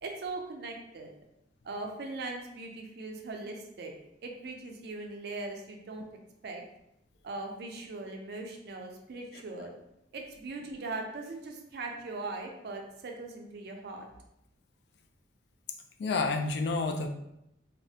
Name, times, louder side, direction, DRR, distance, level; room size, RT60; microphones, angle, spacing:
voice 1, 0.0-1.1 1.6-3.9 4.2-6.1 6.4-6.6 7.2-9.7 10.1-14.1, right 3 dB, 65° right, 2 dB, 0.4 m, -40 dB
voice 2, 16.0-17.1, left 3 dB, 65° left, 4 dB, 0.3 m, -30 dB
2.3 x 2.1 x 2.7 m, 0.82 s
head